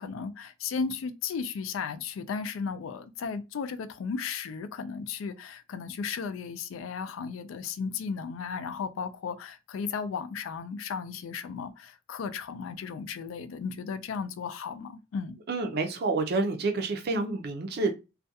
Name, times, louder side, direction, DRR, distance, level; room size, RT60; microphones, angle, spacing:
voice 1, 0.0-15.4, left 5 dB, 80° left, 0.3 m, -35 dB
voice 2, 15.5-17.9, right 3 dB, 50° right, 0.5 m, -28 dB
2.4 x 2.2 x 2.7 m
head